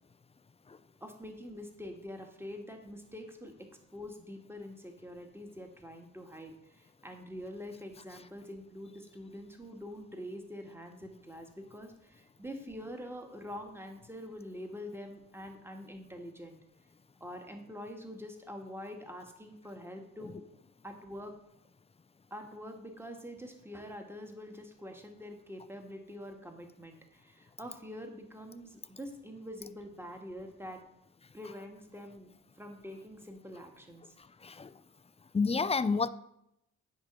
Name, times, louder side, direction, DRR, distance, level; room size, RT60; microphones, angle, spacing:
voice 1, 1.0-6.5 7.0-16.6 17.2-20.4 20.8-21.3 22.3-30.8 31.3-32.3 32.6-34.0, equal, 5° right, 4 dB, 1.7 m, -45 dB
voice 2, 34.2-34.8 35.3-36.1, left 4 dB, 20° left, 16 dB, 0.4 m, -31 dB
9.3 x 3.8 x 6.1 m, 0.81 s
supercardioid pair, 40°, 35 cm